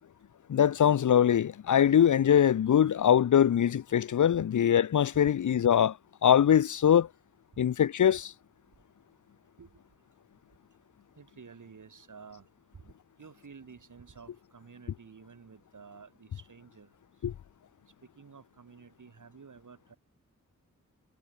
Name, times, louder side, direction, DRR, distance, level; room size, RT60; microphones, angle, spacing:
voice 1, 0.5-6.0 6.2-7.1 7.6-8.3 17.2-17.3, left 9 dB, 70° left, 0.6 m, -23 dB
voice 2, 11.2-12.4 13.2-16.9 18.2-20.0, right 5 dB, 75° right, 4.7 m, -51 dB
cardioid pair, 60°, 31 cm